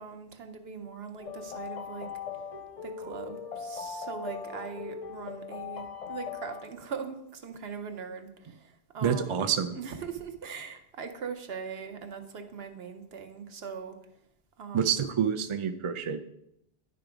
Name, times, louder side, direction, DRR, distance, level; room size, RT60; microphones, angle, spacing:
voice 1, 0.0-2.1 2.8-14.0 14.6-14.9, right 6 dB, 70° right, 6 dB, 1.0 m, -41 dB
sound 1, 1.2-6.9, left 6 dB, 45° left, 0.5 m, -40 dB
voice 2, 9.0-9.8 14.7-16.2, right 7 dB, 45° right, 7 dB, 0.4 m, -27 dB
10.5 x 3.5 x 4.9 m, 0.78 s
omnidirectional pair, 1.1 m